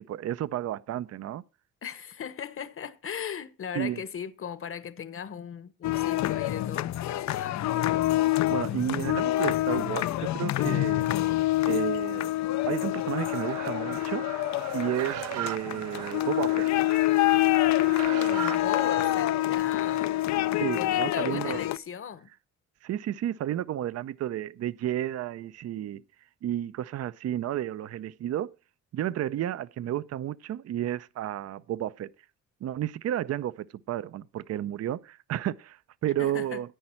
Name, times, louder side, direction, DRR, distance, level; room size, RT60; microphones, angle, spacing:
voice 1, 0.0-1.4 3.7-4.0 8.5-11.1 11.7-12.3 12.7-14.2 14.7-16.8 20.6-21.6 22.8-26.0 26.4-28.5 28.9-32.1 32.6-36.7, right 12 dB, 55° right, 0.6 m, -32 dB
voice 2, 1.8-7.7 11.8-11.9 17.7-20.2 20.7-22.3 36.2-36.8, left 7 dB, 45° left, 1.1 m, -38 dB
sound 1, 5.8-21.8, left 15 dB, 65° left, 0.5 m, -26 dB
sound 2, 13.2-19.1, right 12 dB, 85° right, 0.9 m, -39 dB
10.0 x 9.6 x 4.5 m
cardioid pair, 90°, 30 cm